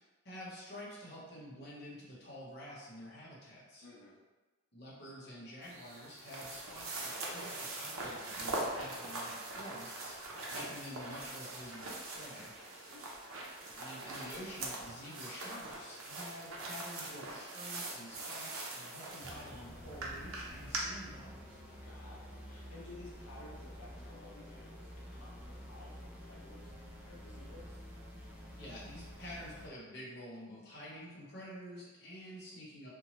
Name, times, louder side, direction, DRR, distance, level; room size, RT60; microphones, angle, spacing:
voice 1, 0.2-3.9 4.7-10.2 10.5-12.6 13.7-21.6 28.2-28.3 28.6-32.9, equal, 50° left, -6 dB, 0.8 m, -49 dB
voice 2, 3.8-4.2 12.6-13.1 21.8-26.7 27.0-27.8, left 2 dB, 90° left, -5 dB, 0.5 m, -54 dB
sound 1, 5.6-20.8, right 2 dB, 80° right, 0.6 m, -42 dB
sound 2, 19.2-29.7, equal, 10° right, 0.4 m, -49 dB
2.9 x 2.1 x 3.0 m, 1.2 s
head